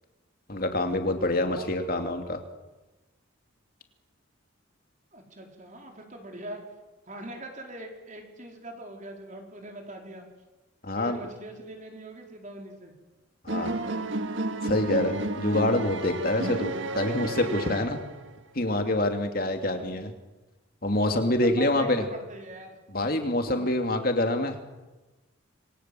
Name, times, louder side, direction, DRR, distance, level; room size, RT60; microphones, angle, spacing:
voice 1, 0.5-2.4 10.8-11.2 13.4-13.8 14.6-18.0 18.5-20.1 20.8-22.0 22.9-24.6, left 1 dB, 45° left, 5 dB, 2.9 m, -26 dB
voice 2, 1.5-1.9 5.1-6.6 7.1-10.2 10.9-12.9 13.5-14.1 19.7-20.1 21.4-22.8 23.5-23.7, right 1 dB, 35° right, 2 dB, 4.4 m, -42 dB
sound 1, 13.5-18.4, right 1 dB, 65° right, 1.8 m, -32 dB
28.0 x 23.0 x 7.9 m, 1.1 s
head